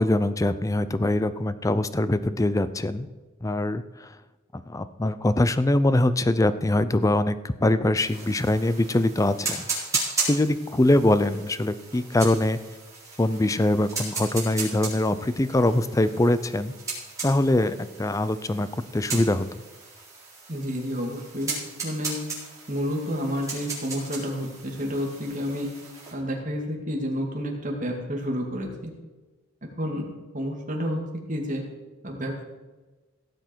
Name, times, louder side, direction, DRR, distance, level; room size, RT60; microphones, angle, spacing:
voice 1, 0.0-3.1 3.4-4.1 4.5-9.7 10.3-12.6 13.2-16.7 17.2-18.7 18.9-19.5, left 1 dB, 15° left, 13 dB, 0.4 m, -23 dB
sound 1, 8.0-26.1, right 4 dB, 15° right, 4.1 m, -36 dB
voice 2, 20.5-21.5 21.8-22.2 22.7-25.7 26.1-28.9 29.8-30.0 30.3-31.6 32.0-32.5, equal, 40° right, 0 dB, 2.3 m, -30 dB
16.5 x 7.8 x 4.6 m, 1.2 s
head